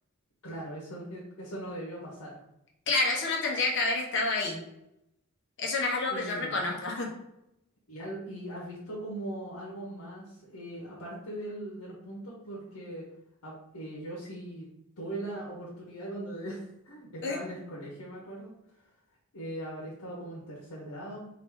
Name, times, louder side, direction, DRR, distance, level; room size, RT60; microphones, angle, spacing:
voice 1, 0.4-2.4 6.1-6.6 7.9-13.0 13.4-14.7 15.0-18.9 19.3-21.3, right 1 dB, 90° left, -5 dB, 1.1 m, -40 dB
voice 2, 2.9-4.6 5.6-7.1 17.2-17.4, left 3 dB, 55° left, -1 dB, 1.1 m, -28 dB
4.9 x 2.7 x 3.7 m, 0.85 s
head